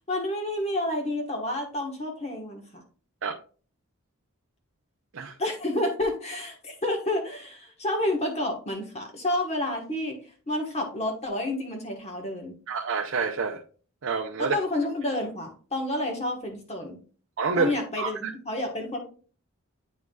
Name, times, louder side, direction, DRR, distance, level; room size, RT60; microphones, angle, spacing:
voice 1, 0.1-2.8 5.4-10.2 10.5-12.6 14.4-17.0 17.5-19.0, left 1 dB, 30° left, 1.2 m, -29 dB
voice 2, 12.7-13.6 14.0-14.5 17.4-18.3, right 5 dB, 60° right, 0.6 m, -28 dB
9.1 x 4.7 x 2.3 m
head